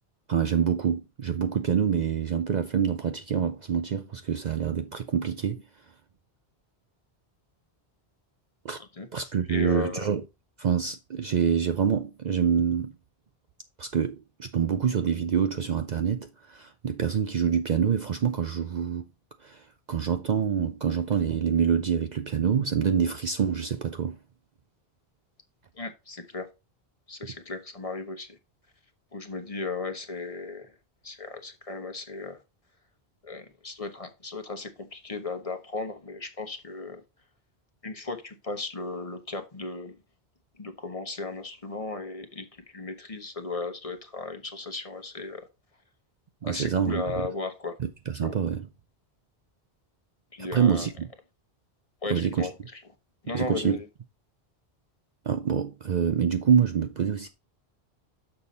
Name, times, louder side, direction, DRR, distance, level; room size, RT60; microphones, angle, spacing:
voice 1, 0.3-5.6 8.6-8.8 9.1-10.2 10.6-12.9 13.8-19.0 19.4-24.2 46.4-47.3 47.8-48.7 50.4-51.1 52.1-52.5 53.3-53.8 55.3-57.3, right 7 dB, 50° right, 0.6 m, -26 dB
voice 2, 9.0-10.1 25.7-26.5 27.1-28.4 29.1-30.8 31.0-32.4 33.2-37.0 37.8-40.0 40.6-45.5 46.4-47.8 48.2-48.3 50.3-50.9 52.0-52.8 53.2-53.9, left 3 dB, 35° left, 1.0 m, -36 dB
6.8 x 5.5 x 4.1 m
omnidirectional pair, 1.1 m